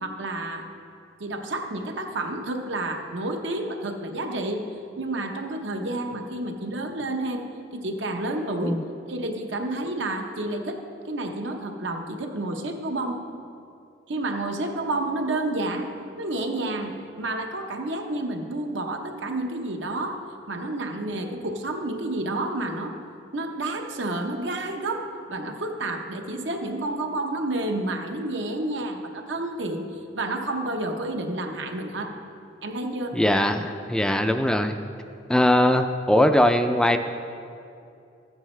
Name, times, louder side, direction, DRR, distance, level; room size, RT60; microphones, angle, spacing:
voice 1, 0.0-0.7 1.2-4.7 5.0-7.4 7.7-8.8 9.1-13.2 14.1-15.9 16.2-22.9 23.3-29.9 30.1-32.2 32.6-33.2, right 2 dB, 75° right, 4 dB, 0.9 m, -30 dB
voice 2, 33.1-34.8 35.3-37.0, left 1 dB, 5° left, 7 dB, 0.3 m, -20 dB
13.5 x 9.1 x 3.2 m, 2.5 s
head